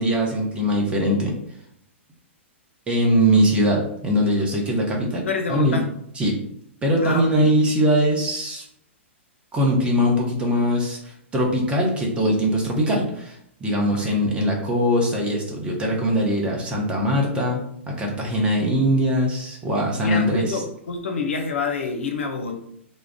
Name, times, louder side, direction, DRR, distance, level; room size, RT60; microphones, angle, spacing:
voice 1, 0.0-1.4 2.9-5.8 6.2-6.4 6.8-8.7 9.5-20.6, equal, 15° right, -1 dB, 0.7 m, -21 dB
voice 2, 5.3-5.8 7.0-7.6 13.9-14.2 20.0-22.6, left 4 dB, 70° left, 4 dB, 0.5 m, -28 dB
2.4 x 2.0 x 3.5 m, 0.72 s
figure-of-eight pair, 110°, 7 cm